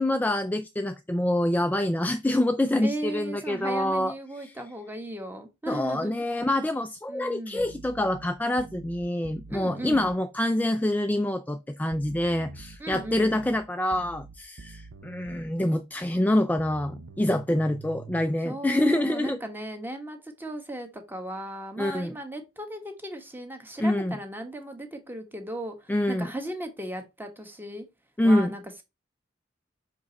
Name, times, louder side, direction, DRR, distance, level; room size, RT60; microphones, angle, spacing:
voice 1, 0.0-4.5 5.7-19.4 21.8-22.1 23.8-24.2 25.9-26.3 28.2-28.5, left 1 dB, 10° left, 0.4 m, -26 dB
voice 2, 2.8-6.1 7.1-7.6 9.5-10.1 12.8-13.4 18.4-27.9 28.2-28.8, right 1 dB, 10° right, 1.3 m, -36 dB
sound 1, 7.6-10.2 11.9-15.5 16.6-18.2, right 4 dB, 70° right, 0.7 m, -46 dB
6.0 x 5.0 x 4.0 m
head